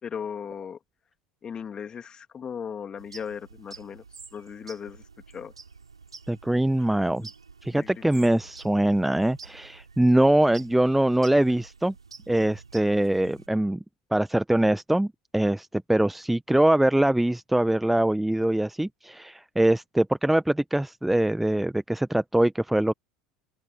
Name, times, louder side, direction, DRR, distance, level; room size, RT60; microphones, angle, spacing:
voice 1, 0.0-0.8 1.4-4.0 4.3-5.0 5.3-5.5 7.7-8.2, left 7 dB, 30° left, 2.5 m, -37 dB
sound 1, 3.0-13.5, right 5 dB, 80° right, 3.3 m, -49 dB
voice 2, 6.3-7.3 7.6-11.9 12.3-13.8 14.1-22.9, right 1 dB, 5° right, 1.2 m, -23 dB
open air
figure-of-eight pair, 75°, 3 cm